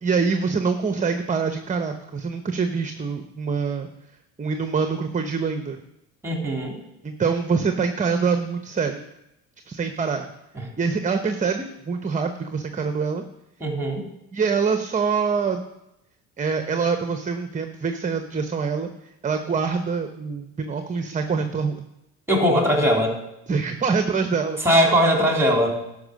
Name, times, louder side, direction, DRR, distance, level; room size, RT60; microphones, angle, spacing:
voice 1, 0.0-3.9 4.4-5.8 7.0-9.0 9.7-10.3 10.8-13.2 14.3-15.6 16.4-18.9 19.2-21.9 23.5-24.6, right 5 dB, 25° right, 7 dB, 0.8 m, -25 dB
voice 2, 6.2-6.8 10.5-10.7 13.6-14.0 22.3-23.2 24.6-25.8, equal, 10° right, 1 dB, 3.2 m, -20 dB
11.5 x 5.6 x 6.5 m, 0.86 s
supercardioid pair, 85°, 32 cm